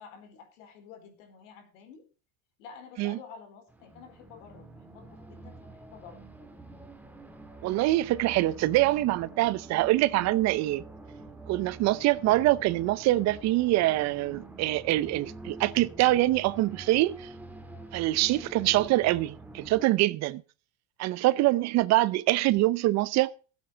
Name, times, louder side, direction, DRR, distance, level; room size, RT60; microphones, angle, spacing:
voice 1, 0.0-2.0 2.6-6.3 21.3-21.6, left 6 dB, 80° left, 4.3 m, -50 dB
sound 1, 3.7-19.9, right 2 dB, 5° right, 1.8 m, -46 dB
voice 2, 7.6-10.8 11.5-17.3 17.9-20.4 21.0-23.3, right 17 dB, 45° right, 0.7 m, -24 dB
14.5 x 8.1 x 5.1 m
supercardioid pair, 135°, 38 cm